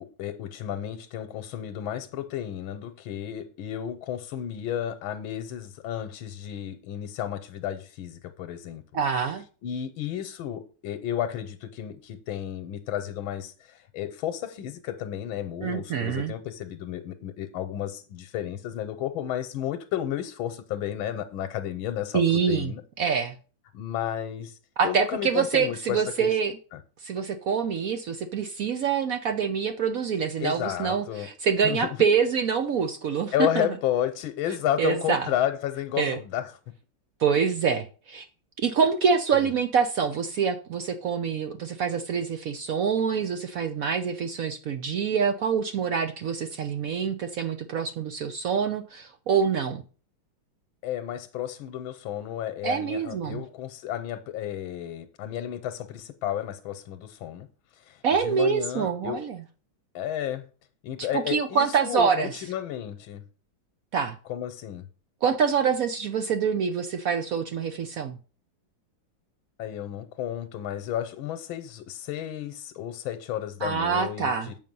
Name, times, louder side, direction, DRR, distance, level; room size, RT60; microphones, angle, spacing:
voice 1, 0.0-8.8 9.6-22.8 23.7-24.6 24.8-26.4 26.7-26.8 30.4-31.3 31.6-32.0 33.3-36.5 39.3-39.5 50.8-57.5 57.9-59.2 59.9-60.5 60.8-63.2 64.3-64.9 69.6-74.5, left 11 dB, 80° left, 1.6 m, -32 dB
voice 2, 8.9-9.4 15.6-16.3 22.1-23.3 24.8-26.5 27.0-33.7 34.8-35.3 36.0-36.2 37.2-38.3 38.6-49.8 52.6-53.4 58.0-59.4 61.1-62.4 63.9-64.2 65.2-68.2 73.6-74.5, right 6 dB, 70° right, 0.8 m, -26 dB
7.6 x 5.6 x 5.3 m
omnidirectional pair, 2.2 m